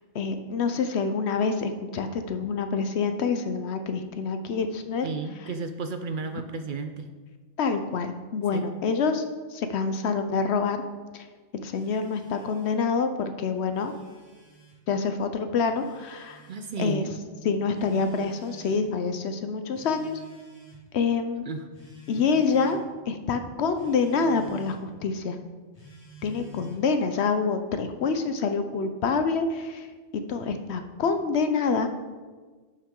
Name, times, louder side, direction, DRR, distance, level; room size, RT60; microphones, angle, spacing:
voice 1, 0.1-5.1 7.6-9.2 9.5-10.8 11.1-11.3 11.5-13.9 14.9-16.4 16.8-17.0 17.4-20.2 20.9-21.5 22.1-22.8 23.1-25.5 26.2-29.9 30.1-31.9, left 5 dB, 65° left, 8 dB, 0.8 m, -26 dB
voice 2, 5.0-7.1 8.5-8.6 16.5-17.1 21.5-21.7 22.4-22.5, right 4 dB, 60° right, 8 dB, 0.5 m, -33 dB
Telephone, 11.7-12.8 13.6-14.8 15.7-16.8 17.7-18.8 19.7-20.9 21.7-22.8 23.7-24.8 25.7-26.9, right 2 dB, 30° left, 1.6 m, -50 dB
11.5 x 5.9 x 3.7 m, 1.4 s
omnidirectional pair, 1.3 m